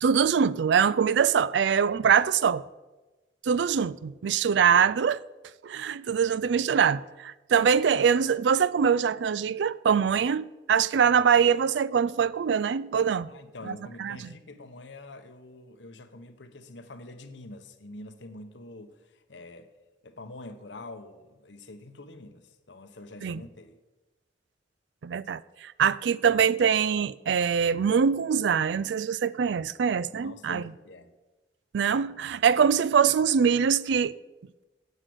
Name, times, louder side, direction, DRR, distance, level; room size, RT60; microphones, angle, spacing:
voice 1, 0.0-2.6 3.4-5.2 5.6-13.3 13.7-13.8 14.0-14.3 23.2-23.4 25.0-30.6 31.7-34.1, right 7 dB, 75° right, 0.4 m, -23 dB
voice 2, 13.2-19.7 20.0-23.8 30.1-31.1, left 2 dB, 85° left, 1.0 m, -45 dB
9.9 x 8.2 x 6.2 m
head